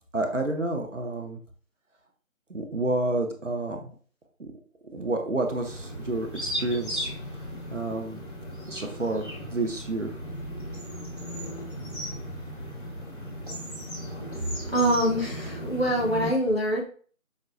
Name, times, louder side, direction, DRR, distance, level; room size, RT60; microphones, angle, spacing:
voice 1, 0.1-1.4 2.5-3.8 4.4-4.5 4.9-7.1 7.7-8.2 8.7-10.1, right 2 dB, 60° right, 4 dB, 0.7 m, -29 dB
sound 1, 5.5-16.3, equal, 35° right, 1.2 m, -36 dB
voice 2, 14.7-16.8, right 1 dB, 45° left, -2 dB, 0.9 m, -24 dB
5.2 x 2.3 x 2.5 m, 0.43 s
figure-of-eight pair, 175°, 42 cm